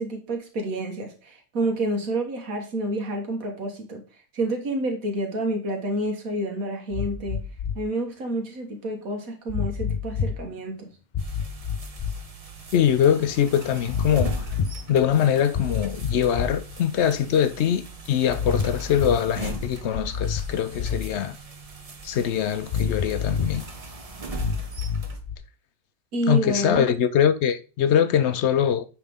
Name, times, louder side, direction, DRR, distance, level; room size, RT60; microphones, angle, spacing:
voice 1, 0.0-4.0 4.3-7.4 7.8-10.9 26.1-26.9, right 1 dB, 80° right, 1.8 m, -29 dB
sound 1, 6.9-7.8 9.5-10.4 11.1-12.2 13.9-14.8 15.5-16.8 18.3-19.3 19.9-21.2 22.7-23.7 24.4-25.4, left 6 dB, 85° left, 0.4 m, -28 dB
sound 2, 11.2-25.2, right 3 dB, 35° right, 0.7 m, -40 dB
voice 2, 12.7-14.3 14.9-21.4 22.0-23.7 26.3-28.9, left 9 dB, 65° left, 0.7 m, -22 dB
9.0 x 3.5 x 3.5 m
omnidirectional pair, 1.5 m